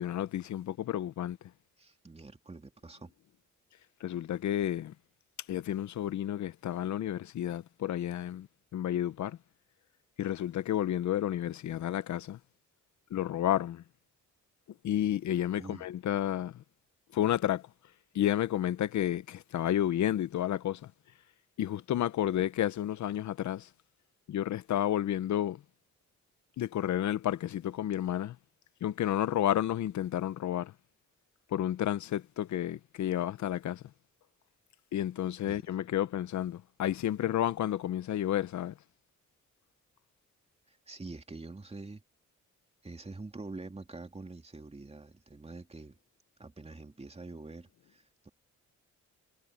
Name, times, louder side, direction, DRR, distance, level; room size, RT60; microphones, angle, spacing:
voice 1, 0.0-1.4 4.0-4.9 5.5-8.5 8.7-9.4 10.2-12.4 13.1-13.8 14.8-16.6 17.1-17.6 18.1-20.8 21.6-23.7 24.3-25.6 26.6-28.3 28.8-30.7 31.5-33.8 34.9-38.7, left 11 dB, 70° left, 0.9 m, -31 dB
voice 2, 1.8-3.1 15.6-15.9 35.4-35.6 40.7-42.0 42.8-46.0 46.4-48.3, right 3 dB, 20° right, 2.9 m, -46 dB
cardioid pair, 85°, 30 cm